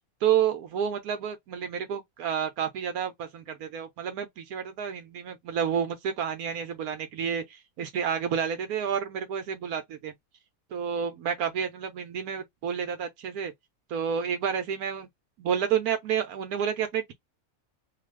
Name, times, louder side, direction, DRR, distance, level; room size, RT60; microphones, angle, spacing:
voice 1, 0.2-10.1 10.7-13.5 13.9-15.1 15.4-17.1, right 8 dB, 80° right, 1.2 m, -30 dB
2.7 x 2.4 x 3.2 m
omnidirectional pair, 1.5 m